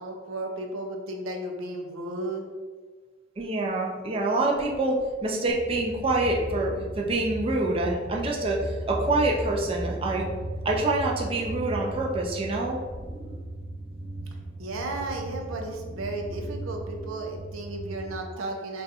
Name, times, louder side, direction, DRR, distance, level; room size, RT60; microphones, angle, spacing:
voice 1, 0.0-2.4 14.6-18.8, right 2 dB, 90° right, 3 dB, 0.5 m, -34 dB
voice 2, 3.4-10.3 10.6-13.4, right 2 dB, 30° right, -1 dB, 0.4 m, -26 dB
sound 1, 5.5-18.2, right 1 dB, 10° right, 0.7 m, -36 dB
2.5 x 2.3 x 4.0 m, 1.4 s
head